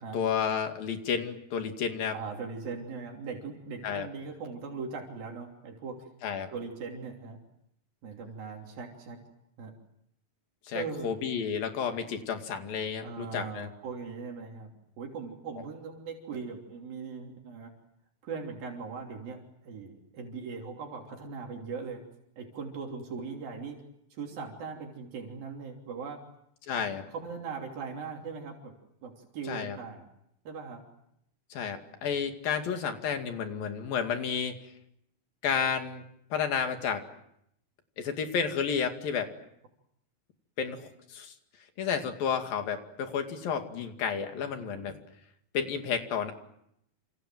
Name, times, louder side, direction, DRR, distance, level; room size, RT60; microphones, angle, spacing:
voice 1, 0.1-2.1 3.8-4.1 6.2-6.5 10.7-13.7 26.7-27.0 29.5-29.8 31.5-34.6 35.4-36.0 36.3-37.0 38.0-39.3 40.6-41.3 41.8-45.0 45.5-46.3, left 7 dB, 75° left, 6 dB, 4.1 m, -31 dB
voice 2, 2.1-6.1 6.5-7.4 8.0-9.2 9.6-9.7 10.7-11.2 13.0-17.7 18.2-22.0 22.4-23.8 24.1-26.2 26.7-26.8 27.1-28.7 29.0-30.0 30.4-30.8, right 5 dB, 80° right, 1 dB, 4.9 m, -40 dB
28.5 x 27.5 x 7.7 m, 0.77 s
omnidirectional pair, 4.1 m